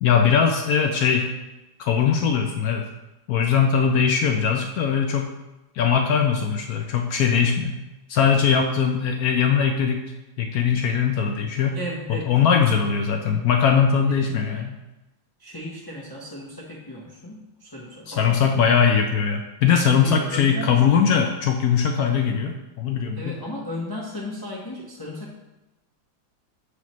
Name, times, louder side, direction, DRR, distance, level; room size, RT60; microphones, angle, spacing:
voice 1, 0.0-1.3 1.8-2.8 3.3-5.3 5.7-7.8 8.1-10.0 10.4-11.8 12.1-14.8 18.1-23.4, left 7 dB, 75° left, 4 dB, 0.8 m, -21 dB
voice 2, 11.7-12.3 12.7-12.9 14.3-14.5 15.4-18.5 20.0-20.8 23.2-25.3, left 1 dB, 20° left, -5 dB, 0.5 m, -35 dB
7.0 x 4.9 x 3.1 m, 1.0 s
omnidirectional pair, 2.1 m